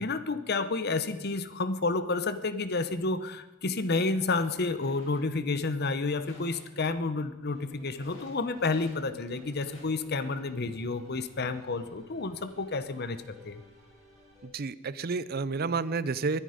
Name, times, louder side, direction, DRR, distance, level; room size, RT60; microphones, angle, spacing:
voice 1, 0.0-13.6, left 3 dB, 50° left, 12 dB, 0.9 m, -30 dB
sound 1, 3.9-4.0 4.6-5.3 6.0-6.7 7.9-9.0 9.3-9.9, left 2 dB, 70° left, 6.1 m, -54 dB
sound 2, 7.5-14.5, left 4 dB, ahead, 6.0 m, -57 dB
voice 2, 14.4-16.4, right 4 dB, 50° right, 17 dB, 0.5 m, -30 dB
22.0 x 10.0 x 5.1 m, 1.1 s
head